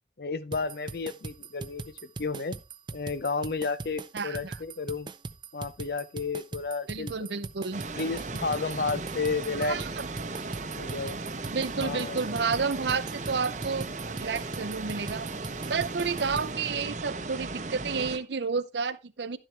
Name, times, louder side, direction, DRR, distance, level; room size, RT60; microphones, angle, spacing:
voice 1, 0.2-2.6 2.9-5.1 5.5-7.4 7.9-9.8 10.7-11.2 11.8-12.2, left 4 dB, 60° left, 0.6 m, -32 dB
sound 1, 0.5-16.5, right 3 dB, 25° right, 0.4 m, -40 dB
voice 2, 4.1-4.6 6.9-7.8 9.6-10.0 11.5-15.3 15.7-19.4, right 5 dB, 80° right, 0.7 m, -31 dB
sound 2, 7.7-18.2, right 3 dB, 45° right, 0.8 m, -36 dB
11.5 x 7.4 x 3.3 m
head